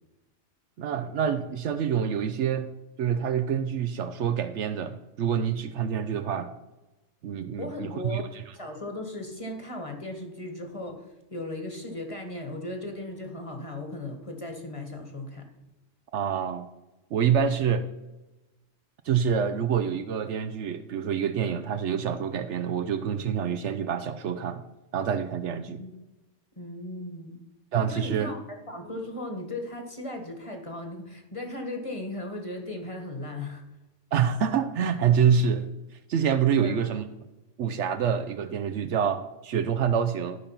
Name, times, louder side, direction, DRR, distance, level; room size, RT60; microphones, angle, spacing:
voice 1, 0.8-2.7 3.0-6.5 7.2-8.2 16.1-16.7 17.1-17.9 19.0-24.6 24.9-25.8 27.7-28.3 34.1-35.7 36.1-37.1 37.6-40.4, right 7 dB, 70° right, 11 dB, 0.9 m, -26 dB
voice 2, 7.6-15.5 25.7-25.9 26.6-27.4 27.9-28.4 28.7-33.6 36.6-37.0, left 2 dB, 25° left, 3 dB, 1.4 m, -37 dB
12.5 x 5.2 x 5.7 m, 1.0 s
omnidirectional pair, 1.3 m